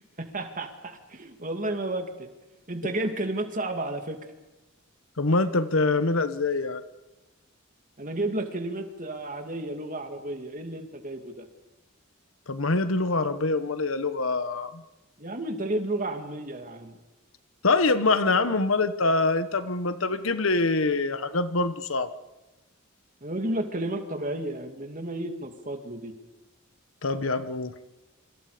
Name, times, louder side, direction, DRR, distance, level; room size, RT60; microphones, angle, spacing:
voice 1, 0.2-2.3 2.7-4.2 8.0-11.4 15.2-17.0 23.2-26.1, right 1 dB, 40° right, 5 dB, 2.5 m, -32 dB
voice 2, 5.2-6.8 12.5-14.8 17.6-22.1 27.0-27.7, left 3 dB, 70° left, 12 dB, 1.2 m, -25 dB
27.0 x 25.5 x 5.1 m, 1.1 s
head